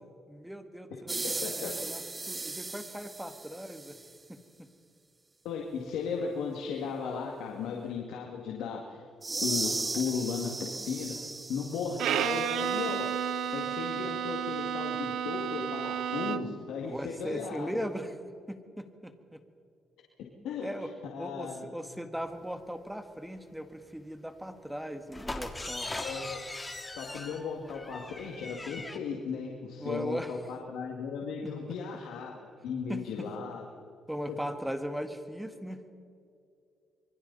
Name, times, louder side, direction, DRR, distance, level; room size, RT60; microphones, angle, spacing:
voice 1, 0.3-2.0 2.3-4.0 4.3-4.7 16.8-18.1 18.5-19.4 20.6-20.9 21.2-25.9 29.8-30.3 31.4-31.5 32.9-33.3 34.1-35.8, equal, 5° right, 8 dB, 1.8 m, -38 dB
sound 1, 1.1-4.1 9.2-13.2, right 3 dB, 20° right, 0.8 m, -37 dB
voice 2, 1.2-1.7 5.4-9.0 9.4-11.1 11.5-13.0 13.5-17.7 20.4-21.7 26.0-26.4 26.9-32.4 32.6-33.6 34.3-34.4, left 6 dB, 90° left, -1 dB, 2.2 m, -36 dB
Bowed string instrument, 12.0-16.7, right 9 dB, 80° right, 0.7 m, -32 dB
sound 2, 25.1-29.0, left 2 dB, 15° left, 2.1 m, -40 dB
26.5 x 23.5 x 4.2 m, 2.5 s
cardioid pair, 90°, 0 cm